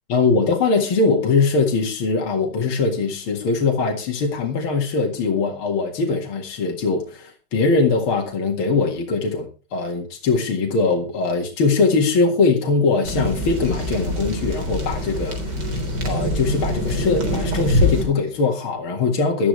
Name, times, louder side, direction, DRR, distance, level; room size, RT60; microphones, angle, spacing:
voice 1, 0.1-15.4 16.0-19.5, left 4 dB, 70° left, 1 dB, 2.8 m, -21 dB
sound 1, 13.0-18.0, left 1 dB, 50° right, 4.2 m, -24 dB
18.5 x 12.5 x 3.3 m, 0.34 s
omnidirectional pair, 2.4 m